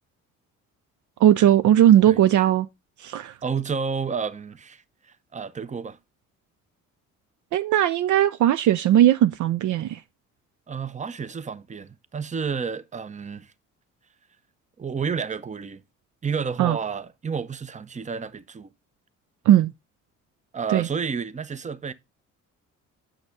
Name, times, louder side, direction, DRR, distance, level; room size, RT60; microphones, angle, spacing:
voice 1, 1.2-2.7 3.0-3.3 7.5-10.0 16.6-16.8 19.5-19.7 20.7-20.9, right 12 dB, 55° right, 0.5 m, -18 dB
voice 2, 3.4-6.0 10.7-13.5 14.8-15.8 16.2-18.7 20.5-21.9, right 6 dB, 20° right, 0.7 m, -30 dB
8.0 x 6.3 x 3.5 m
hypercardioid pair, 60°, 36 cm